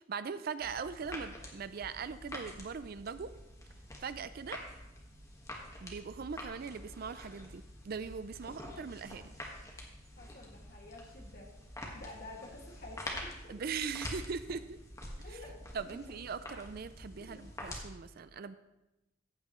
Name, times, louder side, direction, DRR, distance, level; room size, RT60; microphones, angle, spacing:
voice 1, 0.0-3.3 4.0-4.6 5.8-9.3 13.5-14.8 15.7-18.6, right 5 dB, 50° right, 13 dB, 0.4 m, -40 dB
sound 1, 0.6-17.9, left 1 dB, 15° left, 1.5 m, -47 dB
voice 2, 8.4-8.8 10.2-11.5 11.9-13.6 15.2-15.6 15.9-16.2 17.2-17.5, left 2 dB, 50° left, -1 dB, 2.1 m, -51 dB
14.5 x 8.8 x 3.1 m, 0.95 s
head